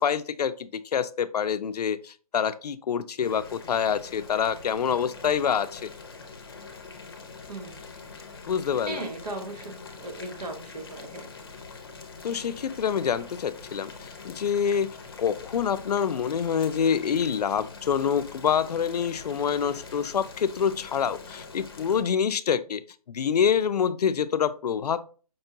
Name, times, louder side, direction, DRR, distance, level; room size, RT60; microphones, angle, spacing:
voice 1, 0.0-5.9 8.5-9.0 12.2-22.8 23.1-25.0, left 7 dB, 80° left, 14 dB, 0.4 m, -26 dB
Boiling, 3.2-22.0, left 4 dB, 40° left, 0.6 m, -44 dB
voice 2, 7.5-7.8 8.9-11.3, right 2 dB, 85° right, 5 dB, 1.0 m, -37 dB
5.3 x 2.3 x 2.7 m, 0.38 s
hypercardioid pair, 175°, 20 cm